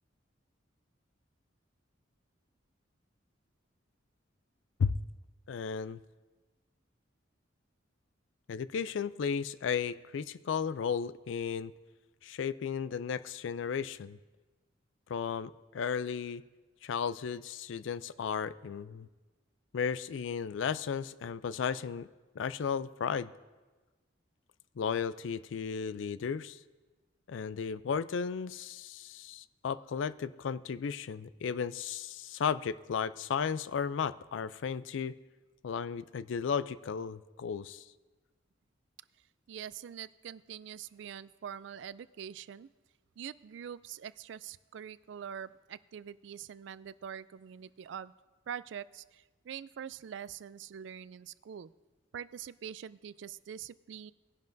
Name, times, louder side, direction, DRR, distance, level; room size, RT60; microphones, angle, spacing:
voice 1, 5.5-6.0 8.5-11.7 12.2-14.2 15.1-16.4 16.8-19.1 19.7-22.1 22.4-23.3 24.8-26.6 27.3-35.1 35.6-37.8, left 6 dB, 70° left, 16 dB, 0.4 m, -34 dB
voice 2, 39.5-42.7 43.2-48.1 48.5-51.7 52.1-54.1, right 8 dB, 65° right, 18 dB, 0.3 m, -44 dB
20.0 x 10.5 x 2.6 m, 1.3 s
head